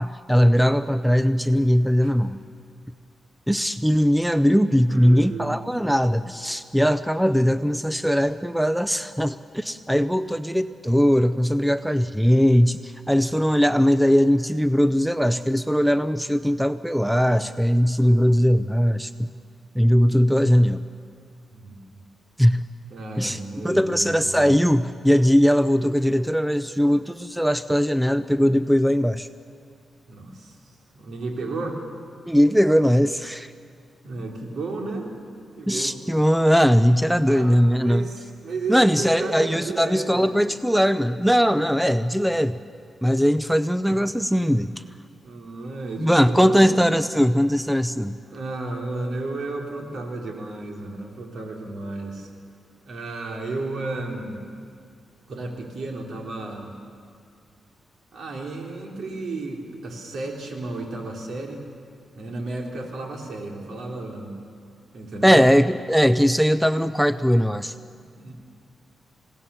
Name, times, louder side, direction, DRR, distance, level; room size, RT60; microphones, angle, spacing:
voice 1, 0.0-2.4 3.5-19.1 19.8-20.9 22.4-22.6 23.2-29.3 32.3-33.5 35.7-38.1 38.7-42.6 43.0-44.7 46.0-48.2 65.2-67.7, equal, ahead, 12 dB, 0.5 m, -20 dB
voice 2, 4.9-5.6 21.5-22.0 22.9-24.6 30.1-30.6 31.0-31.8 34.0-35.1 35.6-36.0 37.3-40.3 45.2-46.6 48.2-52.3 52.9-54.4 55.3-56.8 58.1-61.7 62.1-64.4 64.9-65.4 68.2-68.3, right 2 dB, 65° right, 0 dB, 3.5 m, -33 dB
27.0 x 17.5 x 7.1 m, 2.3 s
wide cardioid pair, 120°, 0 cm